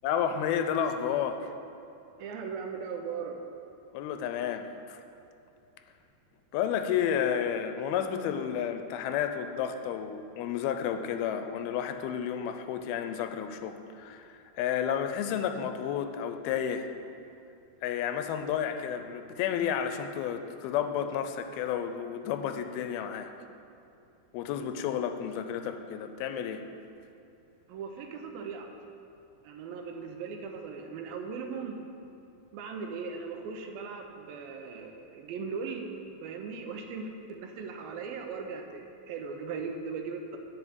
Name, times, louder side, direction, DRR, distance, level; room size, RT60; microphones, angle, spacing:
voice 1, 0.0-1.5 3.9-5.0 6.5-16.9 17.8-23.3 24.3-26.6, left 8 dB, 85° left, 8 dB, 2.5 m, -31 dB
voice 2, 2.2-3.4 27.7-28.8 29.4-31.8 32.5-35.9 36.2-40.4, right 5 dB, 75° right, 4 dB, 2.5 m, -38 dB
9.4 x 5.8 x 8.0 m, 2.7 s
omnidirectional pair, 4.4 m